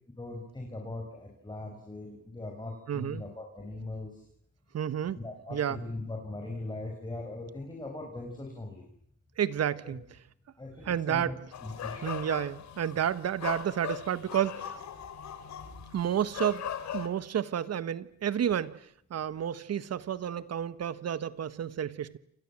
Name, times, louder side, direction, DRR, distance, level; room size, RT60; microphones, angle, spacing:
voice 1, 0.2-4.2 5.1-8.9 9.8-10.0 10.6-12.2, left 2 dB, 15° left, 1 dB, 6.7 m, -40 dB
voice 2, 2.9-3.2 4.7-5.2 5.5-5.8 9.4-10.0 10.8-11.3 12.0-14.8 15.9-16.7 16.9-18.8 19.1-22.2, right 9 dB, 55° right, 15 dB, 1.5 m, -30 dB
sound 1, 11.5-17.1, left 9 dB, 65° left, 3.1 m, -39 dB
28.5 x 24.0 x 7.6 m, 0.70 s
cardioid pair, 90°, 30 cm